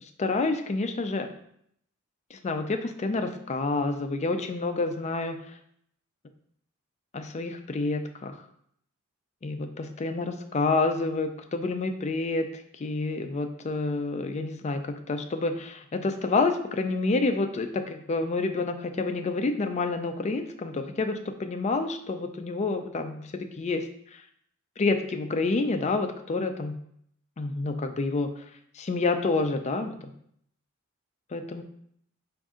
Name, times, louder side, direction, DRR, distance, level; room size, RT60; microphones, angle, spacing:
voice 1, 0.2-1.3 2.3-5.4 7.1-8.3 9.4-12.5 12.8-23.9 24.8-26.7 27.4-28.3 28.8-29.9 31.3-31.6, left 3 dB, 30° left, 7 dB, 0.4 m, -28 dB
5.2 x 2.6 x 3.6 m, 0.69 s
head